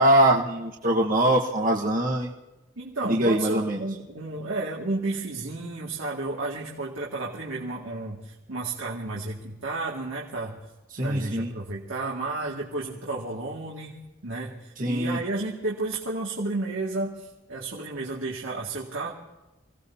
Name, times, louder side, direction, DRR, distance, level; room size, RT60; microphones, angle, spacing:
voice 1, 0.0-2.3 3.0-3.8 10.9-11.5 14.8-15.2, right 1 dB, 45° right, -1 dB, 1.4 m, -22 dB
voice 2, 2.8-10.6 11.0-14.0 14.2-19.1, right 2 dB, 85° right, -4 dB, 2.2 m, -32 dB
27.0 x 17.0 x 2.8 m, 1.1 s
head